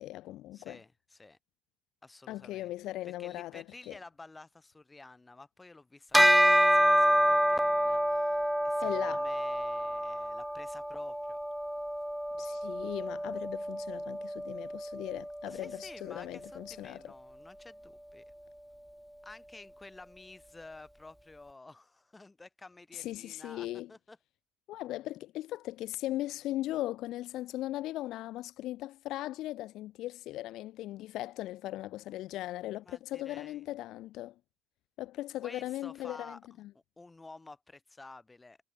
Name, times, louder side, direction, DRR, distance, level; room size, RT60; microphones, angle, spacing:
voice 1, 0.0-0.8 2.3-3.9 8.8-9.3 12.4-17.1 22.9-23.9 24.7-34.3 35.0-36.7, left 15 dB, 65° left, 0.5 m, -38 dB
voice 2, 0.5-1.4 2.0-2.7 3.0-11.4 15.5-18.2 19.2-24.2 32.9-33.6 35.4-38.6, left 3 dB, 15° left, 3.2 m, -52 dB
Bell, 6.1-15.8, equal, ahead, 0.3 m, -28 dB
supercardioid pair, 80°, 0 cm